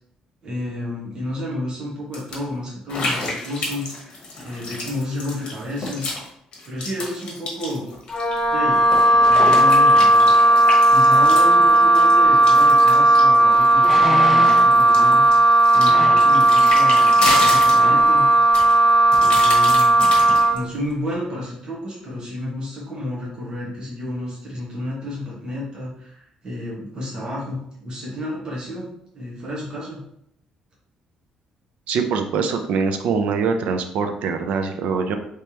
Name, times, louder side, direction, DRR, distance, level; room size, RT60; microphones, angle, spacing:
voice 1, 0.4-6.1 6.6-7.9 8.5-8.8 9.2-10.3 10.9-15.2 15.7-18.3 19.2-20.0 20.5-28.9 29.1-30.0, left 1 dB, 35° right, -6 dB, 1.3 m, -31 dB
sound 1, 2.1-2.4 2.9-6.3 6.5-8.4 8.7-14.0 14.4-18.2 18.5-20.6, left 2 dB, 50° left, 1.1 m, -29 dB
Wind instrument woodwind instrument, 8.1-20.6, right 1 dB, 30° left, 0.7 m, -15 dB
sound 2, 12.8-12.9 13.8-14.8 15.9-16.3 17.3-17.5 17.7-18.1 18.6-18.7, equal, 10° right, 0.4 m, -28 dB
voice 2, 31.9-35.2, right 5 dB, 75° right, 6 dB, 0.5 m, -23 dB
3.3 x 3.2 x 2.9 m, 0.73 s
cardioid pair, 140°, 2 cm